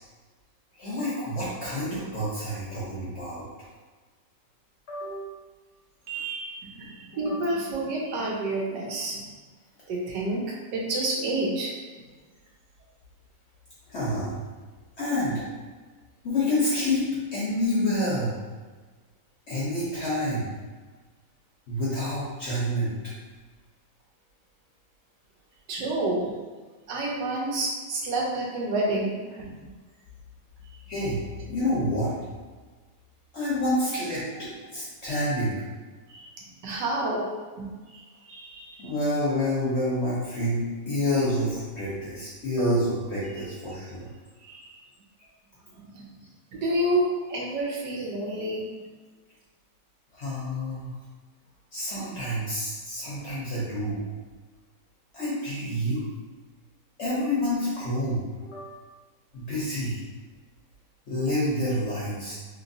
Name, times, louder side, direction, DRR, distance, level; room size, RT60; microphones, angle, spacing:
voice 1, 0.8-3.4 4.9-5.3 7.1-7.4 13.9-14.4 15.0-15.4 16.2-17.0 17.3-18.3 19.5-20.5 21.7-22.9 30.9-31.2 31.5-32.1 33.3-34.2 34.7-35.5 38.8-44.1 50.1-50.9 51.7-54.1 55.1-56.0 57.0-58.7 59.3-60.0 61.1-62.3, left 1 dB, 55° left, -8 dB, 0.8 m, -28 dB
voice 2, 6.1-9.2 9.9-10.4 10.7-11.7 25.7-26.4 26.9-29.6 36.1-37.3 37.6-38.9 44.4-44.8 45.7-46.1 46.5-48.6, right 1 dB, 80° right, -2 dB, 1.3 m, -29 dB
3.1 x 3.0 x 2.6 m, 1.4 s
omnidirectional pair, 1.9 m